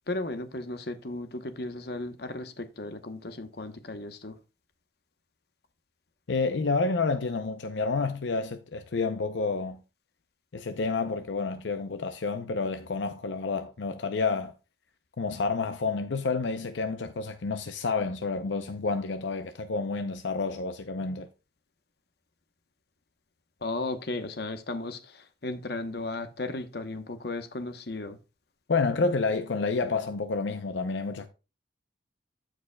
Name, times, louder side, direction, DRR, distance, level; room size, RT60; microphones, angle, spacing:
voice 1, 0.1-4.4 23.6-28.2, left 2 dB, 55° left, 0.9 m, -35 dB
voice 2, 6.3-9.8 10.5-14.5 15.2-21.3 28.7-31.3, left 4 dB, 75° left, 0.6 m, -29 dB
15.0 x 5.0 x 2.2 m
head